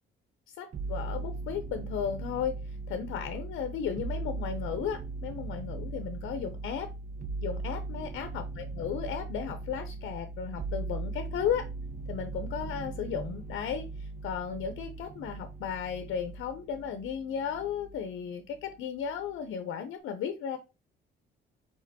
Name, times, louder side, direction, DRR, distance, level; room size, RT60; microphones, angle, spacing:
voice 1, 0.6-6.9 7.4-11.7 12.1-20.6, left 8 dB, 80° left, 9 dB, 0.6 m, -35 dB
sound 1, 0.7-18.2 18.5-19.3, right 3 dB, 40° right, 0.5 m, -39 dB
5.0 x 3.8 x 2.7 m, 0.28 s
cardioid pair, 90°, 20 cm